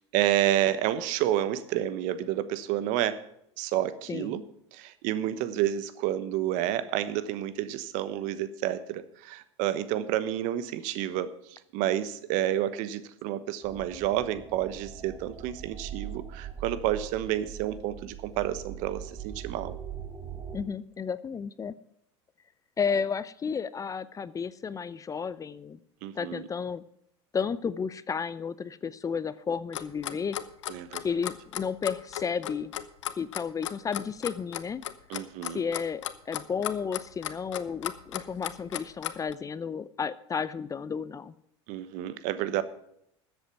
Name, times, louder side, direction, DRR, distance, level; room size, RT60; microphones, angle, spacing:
voice 1, 0.1-3.2 3.6-4.4 4.7-19.7 26.0-26.5 30.7-31.0 35.1-35.6 41.7-42.6, right 12 dB, 60° right, 13 dB, 1.2 m, -30 dB
sound 1, 13.6-20.6, right 8 dB, 25° right, 1.4 m, -42 dB
voice 2, 20.5-21.7 22.8-25.8 26.2-26.8 27.3-30.4 31.0-32.7 33.2-34.8 35.5-41.3, left 6 dB, 20° left, 17 dB, 0.6 m, -32 dB
Clock, 29.7-39.3, left 12 dB, 85° left, 0.9 m, -35 dB
13.5 x 8.1 x 5.9 m, 0.74 s
hypercardioid pair, 95°, 15 cm